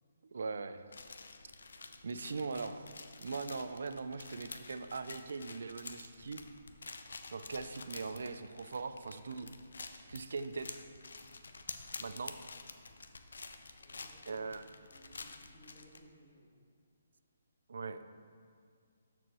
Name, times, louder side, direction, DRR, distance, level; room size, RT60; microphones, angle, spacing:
voice 1, 0.3-0.8 2.0-2.8 3.2-6.4 7.3-9.5 10.1-10.8 12.0-12.4 14.3-14.7 17.7-18.0, right 4 dB, 65° right, 11 dB, 0.4 m, -40 dB
sound 1, 0.9-16.0, left 4 dB, 80° left, 0.6 m, -49 dB
voice 2, 1.8-2.6 2.9-3.1 13.8-16.6, equal, 20° left, -8 dB, 2.0 m, -62 dB
12.5 x 4.6 x 3.0 m, 2.2 s
hypercardioid pair, 175°, 0 cm